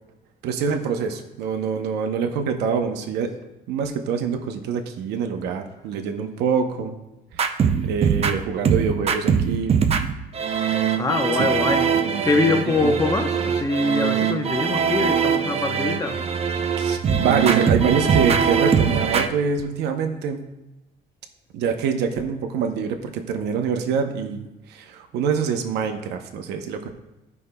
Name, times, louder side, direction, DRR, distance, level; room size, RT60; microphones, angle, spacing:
voice 1, 0.4-3.3 3.7-6.9 7.8-9.8 10.7-10.9 11.4-11.5 11.9-12.2 12.8-12.9 16.8-20.4 21.5-26.9, right 6 dB, 80° right, 0.8 m, -25 dB
sound 1, 7.3-19.3, right 7 dB, 35° right, 0.5 m, -22 dB
voice 2, 11.0-11.9 12.2-16.2, left 3 dB, 20° left, 0.8 m, -23 dB
13.5 x 5.4 x 2.2 m
cardioid pair, 110°, 17 cm